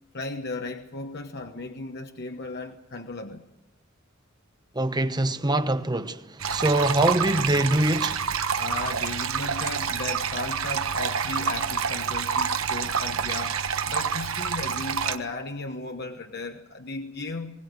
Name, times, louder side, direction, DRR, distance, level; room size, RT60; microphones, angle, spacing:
voice 1, 0.1-3.4 8.6-17.6, left 3 dB, 55° left, 1.2 m, -36 dB
voice 2, 4.7-8.2, right 1 dB, 20° right, 1.0 m, -24 dB
sound 1, 6.4-15.2, right 6 dB, 90° right, 1.2 m, -28 dB
21.5 x 19.0 x 8.1 m
head